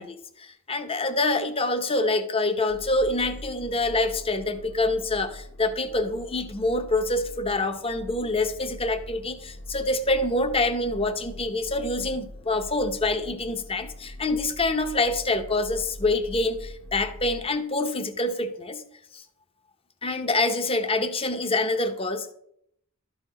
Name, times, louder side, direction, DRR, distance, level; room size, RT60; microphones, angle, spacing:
voice 1, 0.0-18.8 19.1-19.2 20.0-22.3, left 2 dB, 25° left, 9 dB, 0.8 m, -26 dB
sound 1, 2.7-17.5, left 1 dB, 75° left, 1.0 m, -42 dB
12.5 x 4.3 x 5.0 m, 0.72 s
head